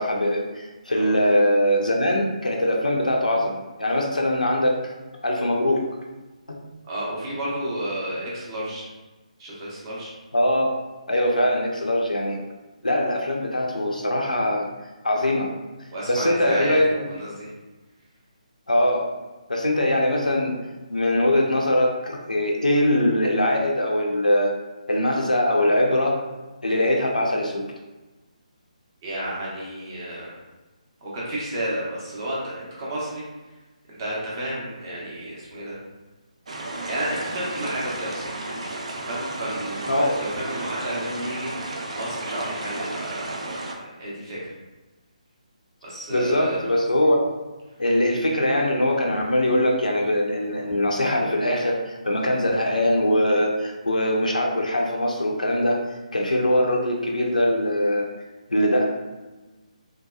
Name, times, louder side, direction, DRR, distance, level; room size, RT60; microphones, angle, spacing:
voice 1, 0.0-4.8 5.2-5.8 6.5-6.6 10.3-10.7 11.1-12.4 12.8-14.7 15.0-15.5 16.1-16.9 18.7-19.0 19.5-20.6 20.9-24.5 24.9-26.2 26.6-27.6 39.9-40.2 46.1-47.3 47.8-55.8 56.1-58.1 58.5-58.9, left 1 dB, 85° left, 0 dB, 0.5 m, -22 dB
voice 2, 6.9-8.9 9.4-10.1 15.1-15.3 15.9-17.5 29.0-30.4 31.0-33.2 33.9-35.8 36.8-38.4 39.0-41.5 41.9-43.6 44.0-44.5 45.8-46.8, right 1 dB, 30° right, -6 dB, 0.8 m, -31 dB
sound 1, 36.5-43.7, right 2 dB, 60° right, 0.4 m, -33 dB
2.7 x 2.2 x 2.3 m, 1.2 s
figure-of-eight pair, 145°, 4 cm